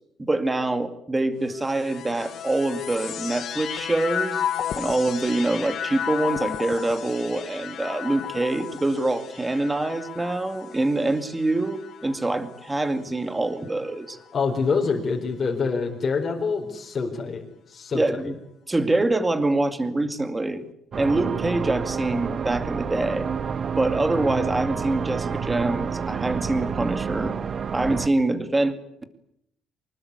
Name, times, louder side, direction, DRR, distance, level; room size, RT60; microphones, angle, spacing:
voice 1, 0.2-4.5 4.7-14.2 17.9-18.4 18.7-20.6 21.0-23.3 23.8-27.4 27.7-28.7, right 2 dB, 10° right, 9 dB, 2.3 m, -25 dB
sound 1, 1.5-13.0 13.7-14.5, left 9 dB, 50° left, 1.5 m, -34 dB
voice 2, 14.3-17.4 17.7-18.3, left 4 dB, 35° left, 1 dB, 4.2 m, -26 dB
sound 2, 20.9-28.1, right 6 dB, 35° right, 0.9 m, -29 dB
25.0 x 20.5 x 9.7 m, 0.75 s
cardioid pair, 160°, 0 cm